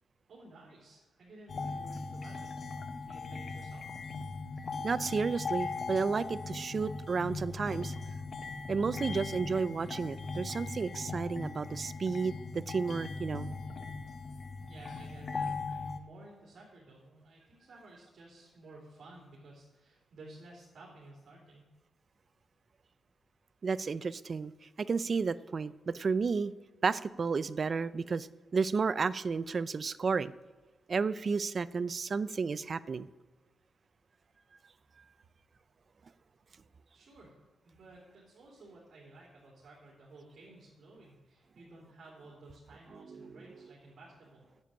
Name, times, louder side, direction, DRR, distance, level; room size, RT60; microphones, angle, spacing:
voice 1, 0.3-2.7 3.1-3.9 14.7-21.7 36.9-37.3 37.6-44.6, right 2 dB, 60° right, -4 dB, 3.2 m, -54 dB
sound 1, 1.5-16.0, left 4 dB, 45° left, 0.8 m, -39 dB
voice 2, 4.8-7.9 8.7-13.5 23.6-24.5 24.8-26.5 26.8-28.3 28.5-30.3 30.9-33.1 43.1-43.3, right 5 dB, 40° right, 16 dB, 0.4 m, -32 dB
9.7 x 7.6 x 8.3 m, 1.2 s
wide cardioid pair, 135°, 0 cm